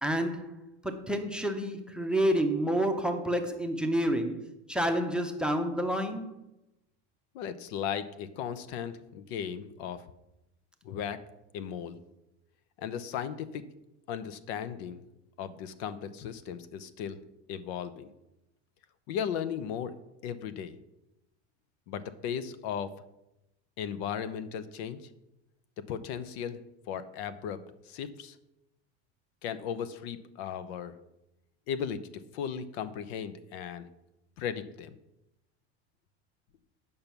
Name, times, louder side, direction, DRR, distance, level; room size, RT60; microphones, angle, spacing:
voice 1, 0.0-4.4 4.7-6.3, right 1 dB, 5° right, 7 dB, 0.6 m, -29 dB
voice 2, 7.3-10.0 10.8-11.2 11.5-12.0 12.8-13.6 14.1-15.0 15.4-17.2 17.5-18.1 19.1-19.9 20.2-20.8 21.9-22.9 23.8-25.1 25.9-27.6 27.8-28.4 29.4-30.9 31.7-33.9 34.4-35.0, left 8 dB, 70° left, 14 dB, 0.8 m, -36 dB
8.7 x 5.5 x 5.9 m, 0.91 s
supercardioid pair, 130°, 34 cm